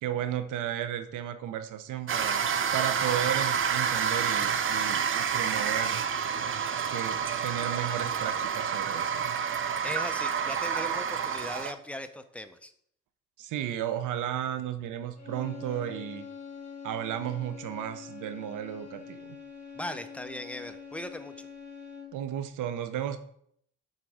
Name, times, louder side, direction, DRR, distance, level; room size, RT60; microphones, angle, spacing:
voice 1, 0.0-6.0 6.9-9.3 13.4-16.2 16.8-19.4 22.1-23.2, right 11 dB, 85° right, 9 dB, 0.8 m, -34 dB
Flushing toliet, 2.1-11.7, right 7 dB, 40° right, 0.6 m, -29 dB
voice 2, 9.8-12.7 19.7-21.5, left 1 dB, 5° left, 8 dB, 0.7 m, -38 dB
sound 1, 15.2-22.3, left 6 dB, 25° left, 3.0 m, -45 dB
7.4 x 4.1 x 4.8 m, 0.67 s
cardioid pair, 90°, 30 cm